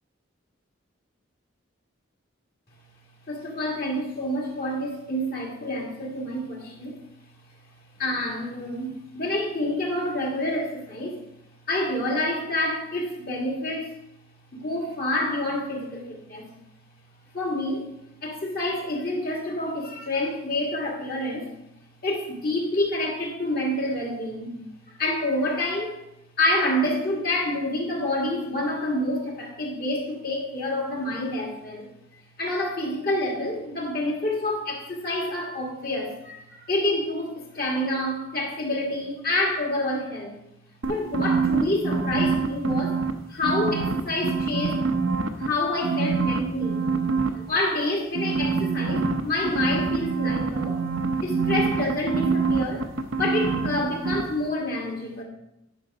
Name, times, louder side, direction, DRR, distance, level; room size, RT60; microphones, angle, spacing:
voice 1, 3.3-7.0 8.0-11.2 11.7-13.9 14.5-16.5 17.3-17.9 18.2-21.5 22.0-24.5 24.9-26.0 26.4-31.9 32.4-40.3 40.9-43.0 43.3-44.9 45.4-46.9 47.3-50.8 51.2-52.9 53.1-55.2, left 1 dB, 45° left, -1 dB, 2.1 m, -28 dB
sound 1, 40.8-43.1 43.4-45.5 45.8-47.3 48.1-53.8 54.0-54.2, right 4 dB, 70° right, 0.8 m, -25 dB
10.5 x 5.9 x 4.8 m, 0.83 s
head